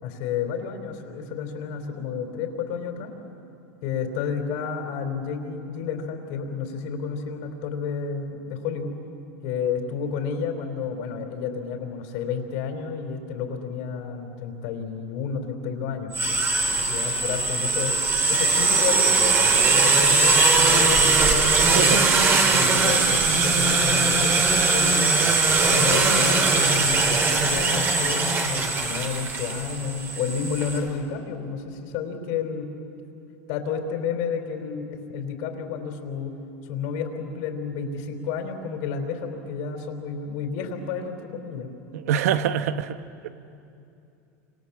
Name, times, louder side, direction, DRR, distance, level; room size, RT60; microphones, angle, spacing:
voice 1, 0.0-3.1 3.8-9.0 9.4-17.9 18.2-22.1 22.5-25.2 25.7-32.7 33.5-36.4 36.6-41.7, left 6 dB, 65° left, 4.0 m, -31 dB
sound 1, 16.1-30.8, right 3 dB, 30° right, 3.1 m, -20 dB
voice 2, 41.9-43.0, right 9 dB, 85° right, 1.1 m, -24 dB
29.0 x 27.0 x 7.4 m
supercardioid pair, 130°, 8 cm